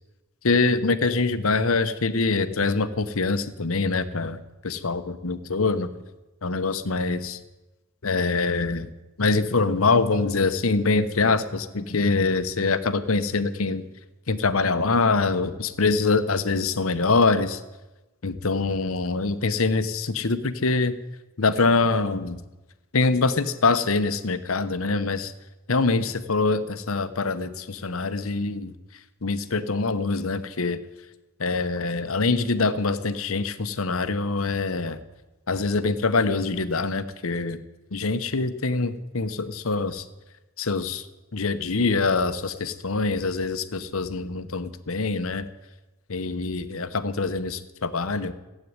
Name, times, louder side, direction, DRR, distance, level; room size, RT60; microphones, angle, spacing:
voice 1, 0.4-5.9 6.4-7.4 8.0-8.9 9.2-13.9 14.3-17.6 18.2-21.0 21.4-22.4 22.9-25.3 25.7-28.7 29.2-30.8 31.4-35.0 35.5-37.6 37.9-40.1 40.6-41.1 41.3-45.5 46.1-48.3, left 3 dB, 70° left, 11 dB, 1.0 m, -24 dB
15.5 x 8.5 x 9.6 m, 1.1 s
head